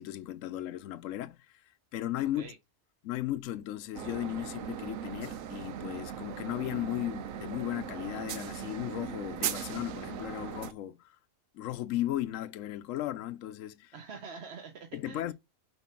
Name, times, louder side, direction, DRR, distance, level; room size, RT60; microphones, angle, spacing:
voice 1, 0.0-2.5 3.0-11.2 11.5-13.9 14.9-15.3, left 13 dB, 80° left, 1.0 m, -36 dB
sound 1, 3.9-10.7, right 9 dB, 90° right, 1.1 m, -39 dB
voice 2, 13.9-15.3, right 5 dB, 55° right, 1.1 m, -45 dB
5.6 x 4.6 x 5.8 m
omnidirectional pair, 1.4 m